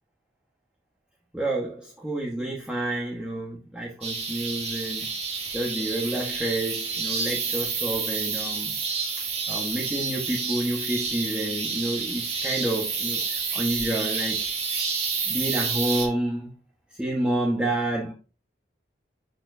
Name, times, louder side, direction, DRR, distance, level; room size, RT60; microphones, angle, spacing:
voice 1, 1.3-5.1 5.5-8.8 9.5-14.5 15.3-16.5 17.0-18.1, right 1 dB, 5° right, 1.4 m, -29 dB
sound 1, 4.0-16.1, right 5 dB, 35° right, 2.6 m, -29 dB
12.5 x 4.5 x 2.7 m
head